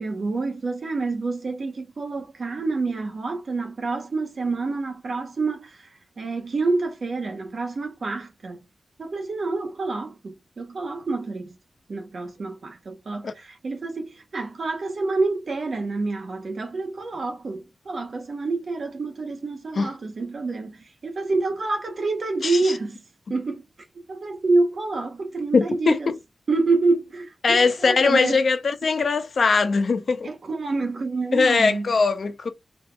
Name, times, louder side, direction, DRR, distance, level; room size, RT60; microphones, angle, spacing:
voice 1, 0.0-5.9 6.2-8.6 9.0-11.5 11.9-23.0 23.3-23.6 24.1-26.1 26.5-28.4 30.2-31.9, right 3 dB, 65° right, 1.2 m, -27 dB
voice 2, 22.4-22.7 25.5-26.2 27.4-30.3 31.3-32.5, left 4 dB, 70° left, 0.9 m, -21 dB
4.1 x 3.6 x 3.4 m
cardioid pair, 65°, 0 cm